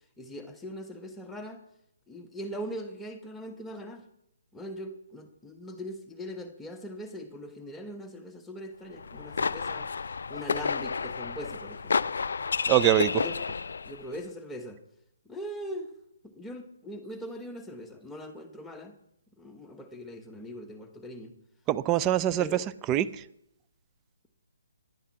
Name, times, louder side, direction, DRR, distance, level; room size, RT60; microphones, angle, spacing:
voice 1, 0.2-1.6 2.1-4.0 4.5-9.9 10.3-12.1 13.1-13.4 13.8-14.8 15.2-15.9 16.2-18.9 19.4-21.3 22.4-22.7 22.9-23.0, equal, 5° left, 4 dB, 1.2 m, -41 dB
sound 1, 9.0-14.0, left 5 dB, 60° left, 0.4 m, -31 dB
voice 2, 12.7-13.2 21.7-23.1, right 12 dB, 20° right, 16 dB, 0.4 m, -24 dB
10.5 x 9.8 x 5.8 m, 0.79 s
figure-of-eight pair, 140°, 0 cm